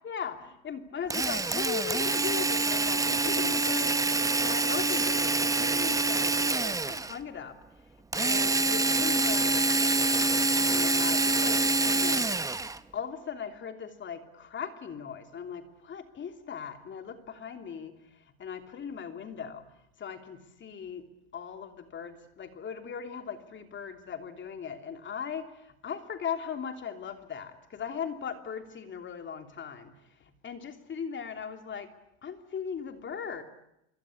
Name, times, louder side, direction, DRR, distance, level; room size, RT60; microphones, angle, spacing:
voice 1, 0.0-7.6 8.1-9.6 10.5-12.3 12.9-19.7 20.0-21.1 21.3-29.9 30.4-31.9 32.2-33.4, left 7 dB, 30° left, 6 dB, 3.0 m, -38 dB
Drill, 1.1-7.2 8.1-12.8, right 3 dB, 10° right, 1.0 m, -26 dB
26.0 x 24.0 x 8.6 m, 0.83 s
supercardioid pair, 110°, 36 cm